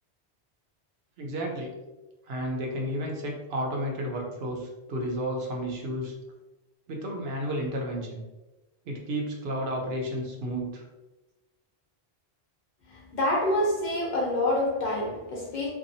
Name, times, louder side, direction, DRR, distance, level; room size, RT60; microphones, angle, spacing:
voice 1, 1.2-1.7 2.3-6.1 6.9-8.2 8.9-10.8, equal, 75° right, 0.8 m, -32 dB
voice 2, 12.9-15.7, left 1 dB, 50° left, 0.8 m, -27 dB
2.7 x 2.3 x 2.6 m
omnidirectional pair, 1.0 m